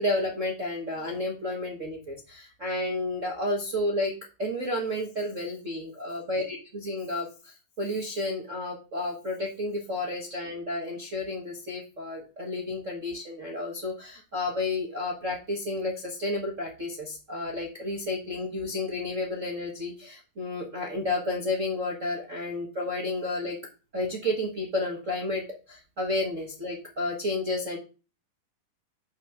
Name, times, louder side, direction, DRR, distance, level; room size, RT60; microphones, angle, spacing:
voice 1, 0.0-4.1 4.4-23.6 23.9-27.8, left 2 dB, 85° right, -2 dB, 0.6 m, -31 dB
5.9 x 5.5 x 6.5 m, 0.34 s
omnidirectional pair, 3.9 m